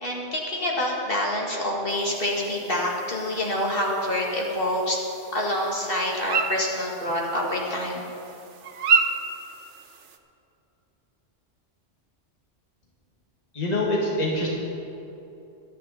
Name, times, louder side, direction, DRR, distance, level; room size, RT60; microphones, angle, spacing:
voice 1, 0.0-5.0 5.3-8.1, left 1 dB, 55° left, -2 dB, 2.2 m, -27 dB
sound 1, 1.9-10.2, right 5 dB, 90° right, 1.2 m, -31 dB
voice 2, 13.5-14.5, left 1 dB, 35° left, -3 dB, 1.9 m, -24 dB
23.5 x 9.3 x 4.1 m, 2.9 s
omnidirectional pair, 1.2 m